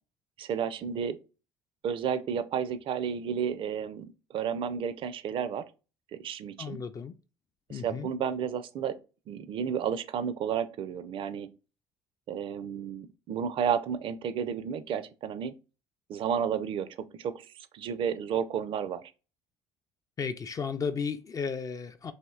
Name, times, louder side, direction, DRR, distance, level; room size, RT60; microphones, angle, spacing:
voice 1, 0.4-1.2 1.8-5.7 6.1-6.8 7.7-9.0 9.3-11.5 12.3-15.5 16.1-19.0, right 8 dB, 55° right, 0.5 m, -32 dB
voice 2, 6.6-7.1 7.7-8.1 20.2-22.1, left 5 dB, 30° left, 0.4 m, -34 dB
4.2 x 2.7 x 2.3 m
supercardioid pair, 85°, 11 cm